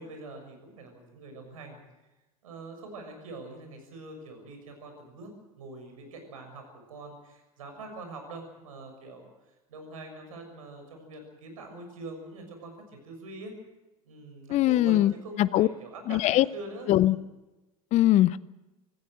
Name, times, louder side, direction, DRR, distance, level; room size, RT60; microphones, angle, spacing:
voice 1, 0.0-1.8 2.4-5.3 5.6-9.3 9.7-13.5 14.0-17.2, right 2 dB, 75° right, 5 dB, 6.5 m, -44 dB
voice 2, 14.5-15.1 15.4-15.7 16.1-16.4 16.9-17.2 17.9-18.4, left 14 dB, 40° left, 18 dB, 0.6 m, -21 dB
26.0 x 14.5 x 8.1 m, 1.1 s
figure-of-eight pair, 75°, 18 cm